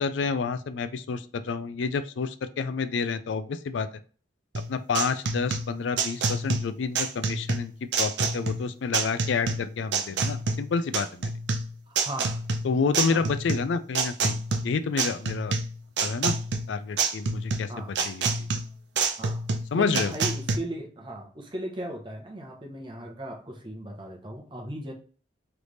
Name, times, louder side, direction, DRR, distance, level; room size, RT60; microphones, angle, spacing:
voice 1, 0.0-3.9 4.7-11.3 12.6-14.4 14.6-15.5 16.0-16.3 16.7-18.5 19.7-20.1, left 5 dB, 85° left, 12 dB, 0.4 m, -29 dB
sound 1, 4.5-20.6, right 4 dB, 75° right, 0.5 m, -28 dB
voice 2, 11.9-12.4 13.1-13.3 17.7-18.0 19.2-19.5 19.7-24.9, right 1 dB, 25° right, 2 dB, 0.9 m, -37 dB
3.3 x 3.3 x 4.0 m, 0.40 s
head